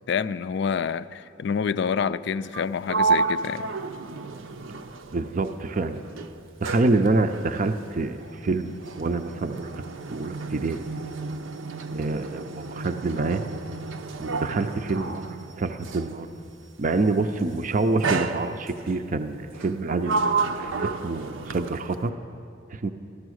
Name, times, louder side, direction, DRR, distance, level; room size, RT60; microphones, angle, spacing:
voice 1, 0.1-3.6, left 6 dB, 60° left, 15 dB, 0.4 m, -27 dB
Sliding door, 2.4-5.7 6.0-16.2 17.1-17.4 18.0-18.9 19.5-22.1, right 4 dB, 85° right, 0.7 m, -31 dB
voice 2, 5.1-6.0 6.6-9.8 10.1-10.9 11.9-13.4 14.2-16.3 16.8-22.1 22.7-22.9, right 3 dB, 40° right, 8 dB, 0.5 m, -27 dB
14.0 x 12.5 x 6.3 m, 2.5 s
head